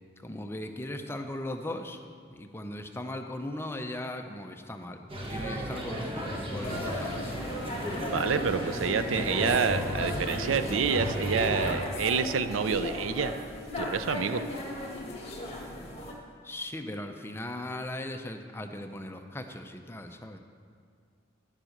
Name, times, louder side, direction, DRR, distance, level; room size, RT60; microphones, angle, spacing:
voice 1, 0.2-7.4 16.4-20.4, left 1 dB, 10° left, 6 dB, 0.6 m, -38 dB
sound 1, 5.1-11.7, equal, 25° right, 1.5 m, -34 dB
sound 2, 6.6-16.1, left 1 dB, 30° left, 1.7 m, -37 dB
voice 2, 8.1-13.3 13.8-14.5, right 6 dB, 75° right, 11 dB, 0.5 m, -28 dB
11.0 x 7.4 x 6.5 m, 2.2 s
head